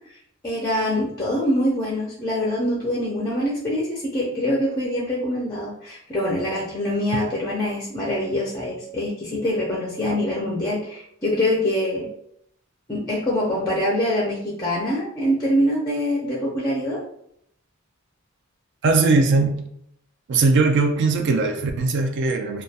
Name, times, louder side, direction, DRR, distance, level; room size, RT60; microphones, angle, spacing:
voice 1, 0.4-12.1 12.9-17.0, left 1 dB, 15° left, -4 dB, 0.4 m, -24 dB
voice 2, 18.8-19.6 20.3-22.6, right 3 dB, 50° right, 4 dB, 0.3 m, -19 dB
2.2 x 2.2 x 2.7 m, 0.73 s
head